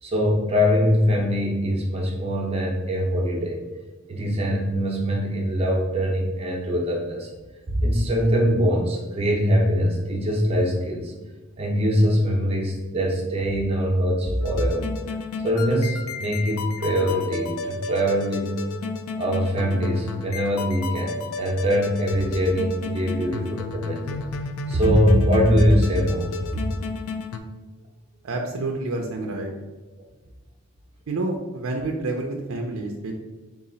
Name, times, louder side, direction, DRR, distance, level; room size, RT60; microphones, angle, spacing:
voice 1, 0.0-3.6 4.1-7.3 7.7-11.1 11.6-14.8 15.4-18.5 19.2-24.2 24.7-26.3, equal, 25° right, -2 dB, 0.7 m, -22 dB
sound 1, 14.4-27.4, left 4 dB, 85° left, 0.4 m, -32 dB
voice 2, 28.2-29.5 31.1-33.1, right 2 dB, 70° right, 2 dB, 0.4 m, -28 dB
4.0 x 2.4 x 3.8 m, 1.2 s
head